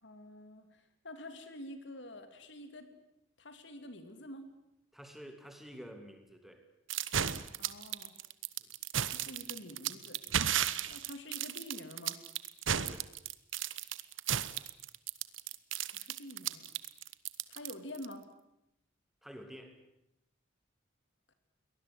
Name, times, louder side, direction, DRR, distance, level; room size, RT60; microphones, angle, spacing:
voice 1, 0.0-2.9 3.4-4.5 7.6-8.1 9.0-10.3 10.9-12.2 15.9-16.7 17.5-18.3 21.3-21.4, left 1 dB, 65° left, 8 dB, 3.0 m, -48 dB
voice 2, 4.9-6.7 8.6-8.7 10.9-11.0 12.7-13.1 19.2-19.8, equal, ahead, 6 dB, 2.5 m, -50 dB
sound 1, 6.9-18.1, right 9 dB, 85° right, 1.2 m, -34 dB
23.0 x 19.5 x 9.7 m, 0.82 s
head